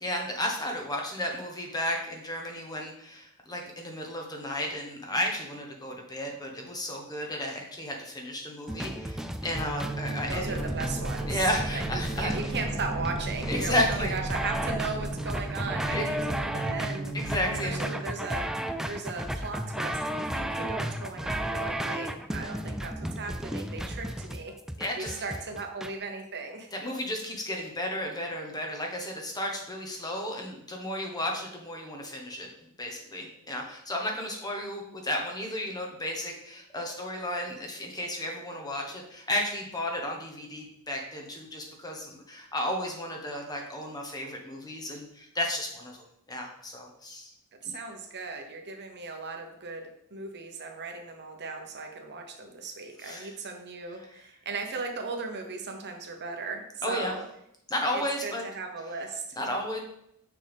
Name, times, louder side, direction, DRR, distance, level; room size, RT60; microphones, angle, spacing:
voice 1, 0.0-10.6 11.3-12.3 13.5-14.1 15.9-16.0 17.1-17.8 24.8-25.2 26.7-32.5 32.8-47.3 47.6-47.7 53.0-53.3 56.8-57.1 57.7-58.4 59.4-59.8, left 1 dB, 20° left, 1 dB, 1.2 m, -33 dB
sound 1, 8.7-25.9, right 1 dB, ahead, 0.3 m, -34 dB
sound 2, 9.5-18.1, right 2 dB, 80° right, 1.4 m, -35 dB
voice 2, 10.3-11.4 11.7-17.1 17.6-24.5 24.9-26.7 47.6-57.2 57.9-59.2, right 4 dB, 50° right, 4 dB, 1.1 m, -37 dB
6.5 x 5.6 x 3.6 m, 0.75 s
head